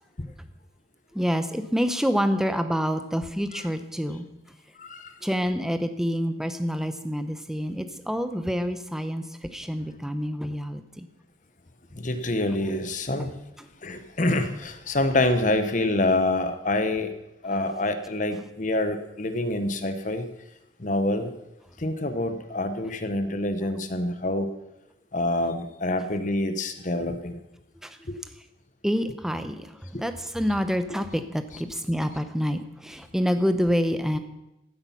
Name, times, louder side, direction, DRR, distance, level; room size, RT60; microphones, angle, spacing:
voice 1, 1.1-4.3 5.2-11.1 13.2-13.3 27.8-28.0 28.8-34.2, equal, ahead, 9 dB, 0.7 m, -27 dB
voice 2, 4.8-5.1 11.9-13.4 13.8-17.1 17.4-20.3 20.8-21.3 21.8-24.5 25.1-27.4 28.1-28.2 29.9-30.0, left 2 dB, 40° left, 9 dB, 1.0 m, -26 dB
15.0 x 8.7 x 5.6 m, 0.90 s
head